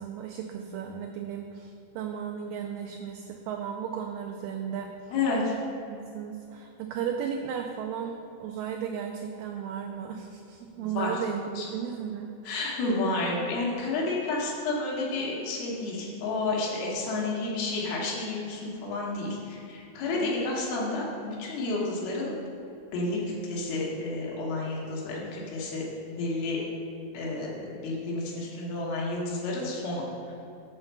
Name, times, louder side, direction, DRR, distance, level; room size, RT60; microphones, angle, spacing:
voice 1, 0.0-5.1 5.9-12.6 20.1-20.4, right 8 dB, 85° right, 3 dB, 2.0 m, -35 dB
voice 2, 5.1-5.6 10.8-11.1 11.6-11.7 12.4-22.4 22.9-25.8 26.2-26.6 27.1-30.3, left 2 dB, 85° left, -4 dB, 3.3 m, -30 dB
7.9 x 4.4 x 6.7 m, 2.8 s
omnidirectional pair, 4.3 m